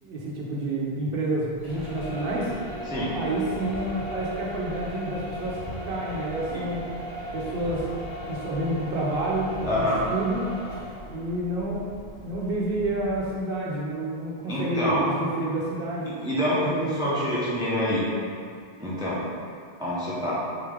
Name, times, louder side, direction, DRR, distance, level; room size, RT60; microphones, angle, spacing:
voice 1, 0.0-2.5 3.1-6.9 7.3-7.9 8.3-10.5 11.1-16.2 16.6-17.2, right 1 dB, 70° right, -4 dB, 0.8 m, -29 dB
sound 1, 1.6-13.4, equal, 50° left, 1.7 m, -37 dB
voice 2, 9.7-10.0 14.4-15.1 16.2-18.0 18.8-19.2 19.8-20.4, equal, 5° right, -8 dB, 0.6 m, -26 dB
3.8 x 3.5 x 3.3 m, 2.2 s
omnidirectional pair, 1.0 m